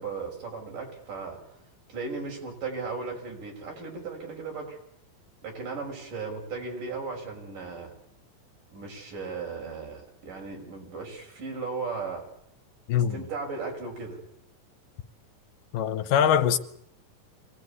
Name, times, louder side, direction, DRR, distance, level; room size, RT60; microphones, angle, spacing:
voice 1, 0.0-1.4 1.9-4.8 5.4-7.9 8.7-12.2 12.9-14.2, right 4 dB, 70° right, 7.4 m, -36 dB
voice 2, 15.7-16.6, left 9 dB, 75° left, 2.6 m, -22 dB
24.5 x 18.5 x 9.7 m
omnidirectional pair, 3.9 m